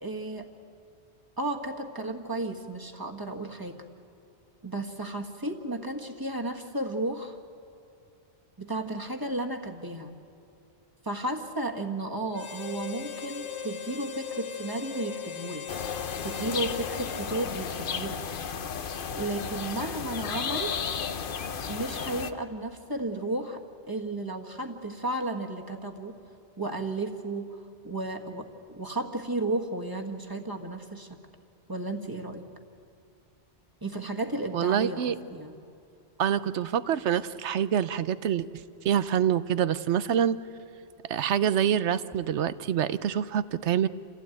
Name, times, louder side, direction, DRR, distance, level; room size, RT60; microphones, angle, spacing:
voice 1, 0.0-0.5 1.4-3.8 4.6-7.4 8.6-10.1 11.0-15.9 16.2-18.2 19.1-20.7 21.7-23.6 23.9-26.1 26.6-27.6 27.8-31.1 31.7-32.4 33.8-35.6, right 2 dB, 20° right, 3 dB, 1.5 m, -33 dB
Harmonica, 12.3-18.3, left 8 dB, 85° left, 1.2 m, -39 dB
sound 1, 15.7-22.3, left 6 dB, 55° left, 0.9 m, -34 dB
voice 2, 34.5-35.2 36.2-38.5 38.8-40.4 41.1-43.9, right 9 dB, 90° right, 14 dB, 1.0 m, -26 dB
28.0 x 15.5 x 9.1 m, 2.6 s
omnidirectional pair, 1.1 m